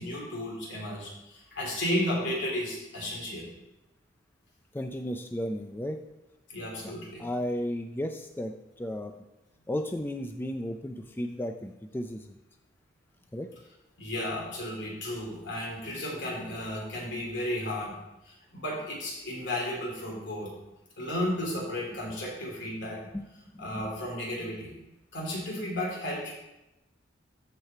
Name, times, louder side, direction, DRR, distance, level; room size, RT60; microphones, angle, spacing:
voice 1, 0.0-3.5 6.5-7.3 14.0-17.9 18.3-20.5 21.0-23.0 23.6-24.8 25.1-26.3, left 1 dB, 70° left, -3 dB, 3.5 m, -33 dB
voice 2, 4.7-6.0 6.8-6.9 7.2-9.1 9.7-12.4 13.3-13.5 23.1-23.9, equal, 10° left, 5 dB, 0.4 m, -34 dB
13.5 x 4.9 x 4.5 m, 0.96 s
head